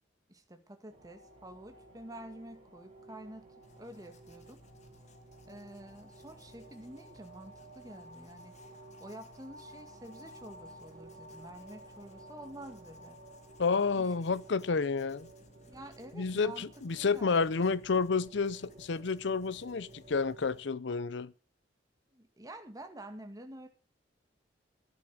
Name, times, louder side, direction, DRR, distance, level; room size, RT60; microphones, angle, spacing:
voice 1, 0.3-4.6 5.5-8.6 9.0-13.2 14.0-14.4 15.7-16.7 17.0-17.7 22.1-23.7, right 1 dB, 20° right, 1.9 m, -49 dB
sound 1, 0.9-20.6, right 1 dB, 40° right, 4.9 m, -54 dB
Writing, 3.6-20.7, left 1 dB, 40° left, 1.8 m, -59 dB
voice 2, 13.6-15.3 16.1-21.3, left 4 dB, 70° left, 0.6 m, -30 dB
12.5 x 10.5 x 6.6 m
head